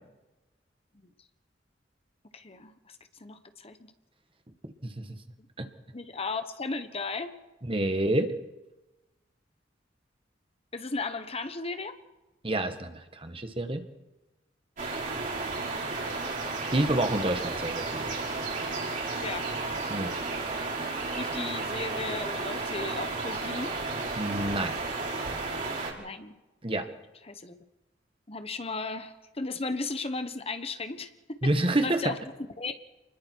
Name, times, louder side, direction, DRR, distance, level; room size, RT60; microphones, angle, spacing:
voice 1, 2.3-3.9 5.9-7.3 10.7-11.9 19.1-20.0 21.1-23.7 26.0-26.3 27.2-27.6 28.3-32.2 32.6-32.7, left 3 dB, 35° left, 9 dB, 1.2 m, -36 dB
voice 2, 4.8-5.2 5.6-5.7 7.7-8.3 12.4-13.8 16.7-18.1 19.9-20.1 24.2-24.7 26.6-26.9 31.4-32.0, right 1 dB, 30° right, 7 dB, 1.7 m, -28 dB
sound 1, 14.8-25.9, right 3 dB, 45° right, 5.6 m, -33 dB
29.0 x 20.5 x 4.7 m, 1.1 s
head